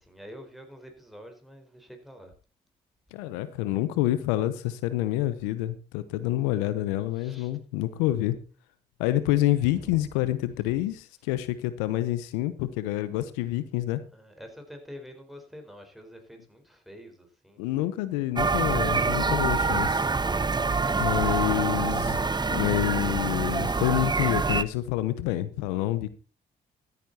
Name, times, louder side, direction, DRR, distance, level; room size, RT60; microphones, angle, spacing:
voice 1, 0.0-2.3 7.1-7.5 9.6-10.0 14.1-17.7 19.1-19.4, equal, ahead, 4 dB, 4.7 m, -47 dB
voice 2, 3.1-8.4 9.0-14.0 17.6-20.1 21.0-22.2 22.5-26.1, left 14 dB, 90° left, 15 dB, 0.8 m, -27 dB
sound 1, 18.4-24.6, right 4 dB, 20° right, 0.9 m, -26 dB
14.0 x 9.7 x 4.3 m, 0.35 s
hypercardioid pair, 55°, 19 cm